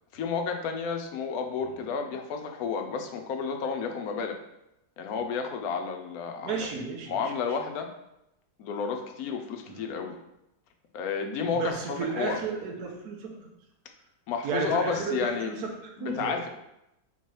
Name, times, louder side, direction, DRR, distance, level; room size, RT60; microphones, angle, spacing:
voice 1, 0.1-4.4 5.0-6.7 7.1-7.9 8.6-10.1 10.9-12.4 14.3-15.6 16.0-16.5, left 5 dB, 70° left, 4 dB, 1.0 m, -31 dB
voice 2, 6.4-7.2 9.7-9.9 11.5-13.3 14.4-16.5, right 5 dB, 75° right, 1 dB, 1.3 m, -33 dB
4.0 x 2.9 x 4.5 m, 0.86 s
omnidirectional pair, 1.7 m